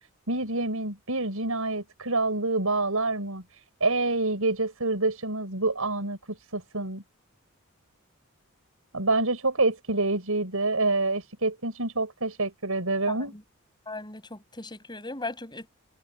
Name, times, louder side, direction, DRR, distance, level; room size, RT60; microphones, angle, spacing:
voice 1, 0.3-7.0 8.9-13.3, right 2 dB, 80° right, 5.8 m, -27 dB
voice 2, 13.1-13.4 13.9-15.7, left 2 dB, 20° left, 7.5 m, -38 dB
head